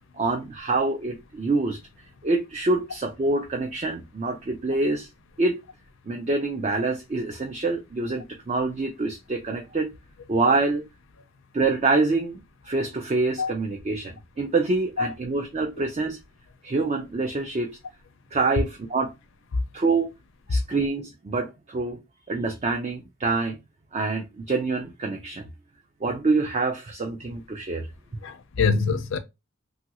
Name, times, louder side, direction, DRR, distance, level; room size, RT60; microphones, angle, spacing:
voice 1, 0.1-1.8 2.2-5.1 5.4-5.6 6.1-9.9 10.3-10.8 11.5-16.2 16.6-17.8 18.3-19.1 19.7-20.1 20.5-22.0 22.3-23.6 23.9-25.5 26.0-27.9, right 3 dB, 30° right, 0.3 m, -26 dB
voice 2, 28.2-29.2, left 4 dB, 60° left, 0.4 m, -24 dB
3.0 x 2.4 x 2.8 m
head